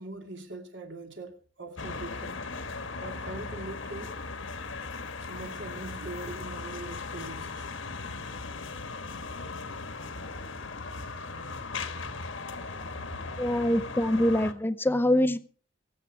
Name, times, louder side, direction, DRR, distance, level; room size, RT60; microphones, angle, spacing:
voice 1, 0.0-2.5 3.0-4.2 5.2-7.7 11.4-11.7 12.6-13.7, right 2 dB, 60° right, 2.5 m, -43 dB
sound 1, 1.8-14.5, left 4 dB, 70° left, 1.4 m, -38 dB
voice 2, 13.4-15.4, left 1 dB, 10° left, 0.6 m, -24 dB
24.0 x 8.3 x 4.7 m
head